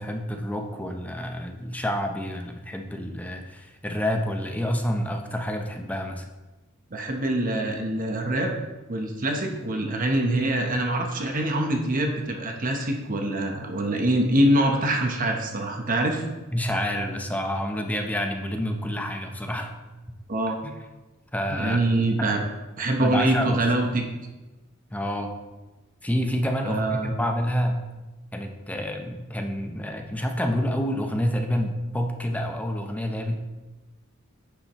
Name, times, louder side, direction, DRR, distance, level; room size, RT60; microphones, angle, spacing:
voice 1, 0.0-6.3 16.5-19.7 20.6-20.7 21.3-21.8 22.2-22.4 23.0-23.6 24.9-25.3 26.0-27.8 28.3-33.4, equal, 5° left, 3 dB, 0.7 m, -28 dB
voice 2, 6.9-8.5 8.9-16.2 20.3-20.6 21.5-22.4 22.8-24.0 26.6-27.1, right 1 dB, 40° right, 2 dB, 0.9 m, -24 dB
9.8 x 6.9 x 3.0 m, 1.1 s
head